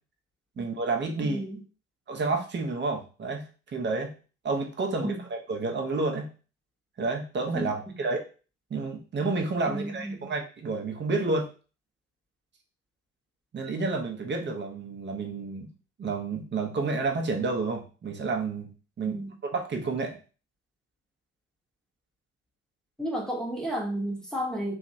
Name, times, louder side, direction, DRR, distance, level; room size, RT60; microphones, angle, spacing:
voice 1, 0.6-1.4 2.1-3.4 3.7-4.1 4.4-6.3 7.0-8.2 8.7-11.5 13.5-15.7 16.0-20.2, right 3 dB, 30° right, 3 dB, 0.8 m, -30 dB
voice 2, 1.2-1.6 5.0-5.2 7.5-7.7 9.7-10.3 19.0-19.3 23.0-24.7, right 1 dB, ahead, -1 dB, 0.9 m, -32 dB
2.8 x 2.4 x 2.7 m, 0.36 s
hypercardioid pair, 55°, 38 cm